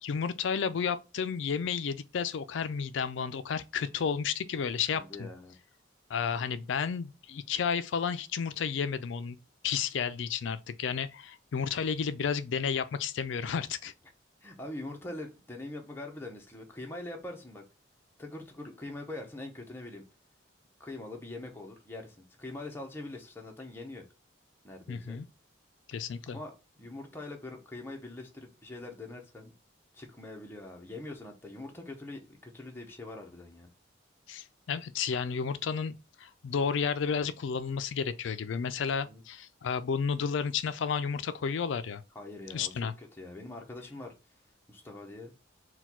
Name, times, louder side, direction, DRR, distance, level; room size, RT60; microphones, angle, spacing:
voice 1, 0.0-5.3 6.1-9.4 9.6-13.9 24.9-25.3 25.9-26.4 34.3-42.0 42.5-42.9, left 6 dB, 65° left, 0.4 m, -32 dB
voice 2, 4.9-5.5 14.4-17.6 18.2-20.0 20.8-24.0 24.6-25.2 26.3-29.5 29.9-33.7 39.1-39.2 42.1-44.2 44.7-45.3, left 2 dB, 10° left, 0.7 m, -43 dB
4.2 x 2.3 x 4.2 m
head